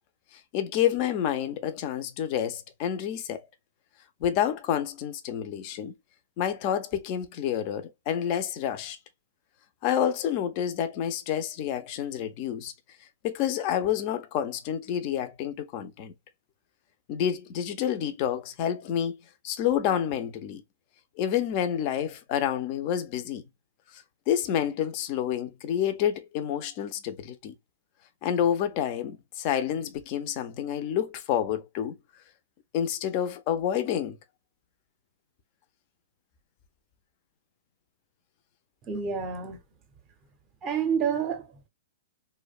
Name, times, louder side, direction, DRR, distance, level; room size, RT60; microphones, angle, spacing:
voice 1, 0.5-3.5 4.2-5.9 6.4-9.0 9.8-12.7 13.2-16.1 17.1-19.2 19.4-20.6 21.2-23.4 23.9-27.5 28.2-32.0 32.7-34.2, left 9 dB, 40° left, 0.4 m, -28 dB
voice 2, 38.9-39.6 40.6-41.7, right 7 dB, 25° right, 0.6 m, -29 dB
2.6 x 2.1 x 2.3 m
hypercardioid pair, 145°, 0 cm